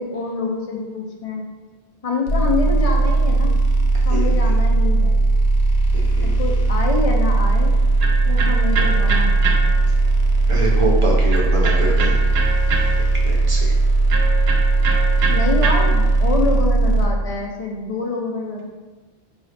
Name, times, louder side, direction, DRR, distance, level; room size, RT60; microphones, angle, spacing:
voice 1, 0.0-1.4 2.0-3.6 4.1-5.2 6.2-7.8 8.3-9.5 15.2-18.6, left 3 dB, 50° left, 0 dB, 0.4 m, -26 dB
sound 1, 2.3-17.0, right 3 dB, 85° left, 0.8 m, -17 dB
voice 2, 4.1-4.5 5.9-6.3 10.5-12.1 13.2-13.7, right 2 dB, 40° right, -2 dB, 0.6 m, -25 dB
Electric guitar, 7.3-16.4, right 4 dB, 75° right, 0.8 m, -28 dB
4.7 x 2.6 x 3.2 m, 1.3 s
omnidirectional pair, 1.0 m